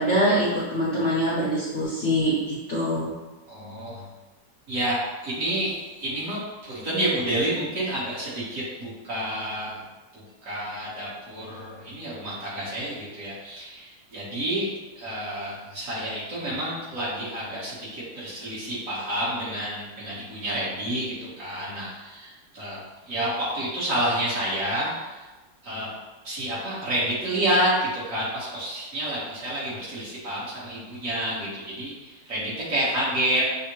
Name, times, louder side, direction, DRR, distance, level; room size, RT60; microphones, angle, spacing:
voice 1, 0.0-3.1, equal, 50° left, -8 dB, 0.9 m, -24 dB
voice 2, 3.5-4.1 4.7-9.8 10.1-25.3 25.6-25.9 26.2-33.5, right 1 dB, 50° right, -8 dB, 1.5 m, -29 dB
6.2 x 2.1 x 3.0 m, 1.2 s
omnidirectional pair, 2.0 m